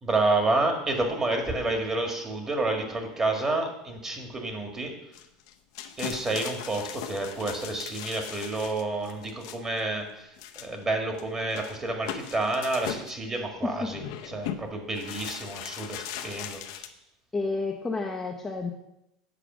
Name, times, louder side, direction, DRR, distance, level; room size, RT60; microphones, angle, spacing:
voice 1, 0.0-4.9 6.0-16.8, right 2 dB, 20° right, 3 dB, 1.7 m, -29 dB
sound 1, 5.1-9.8 10.4-10.8 11.2-11.3 11.5-13.1 13.9-14.6 14.9-16.9, left 10 dB, 75° left, 0.7 m, -39 dB
voice 2, 17.3-18.7, left 3 dB, 10° left, 1 dB, 0.7 m, -30 dB
8.1 x 4.9 x 6.0 m, 0.85 s
supercardioid pair, 130°, 2 cm